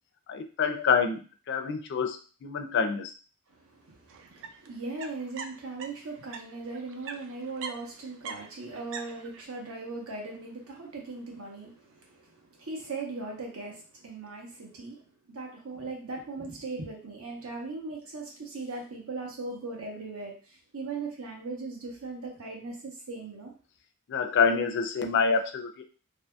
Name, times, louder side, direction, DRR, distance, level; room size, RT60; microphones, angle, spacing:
voice 1, 0.3-3.1 24.1-25.8, left 5 dB, 55° left, 6 dB, 0.4 m, -27 dB
voice 2, 3.5-23.5, right 3 dB, 70° right, 0 dB, 0.9 m, -39 dB
sound 1, 4.1-6.4 6.7-9.4, right 5 dB, 55° right, 0.3 m, -42 dB
2.7 x 2.7 x 2.2 m, 0.38 s
head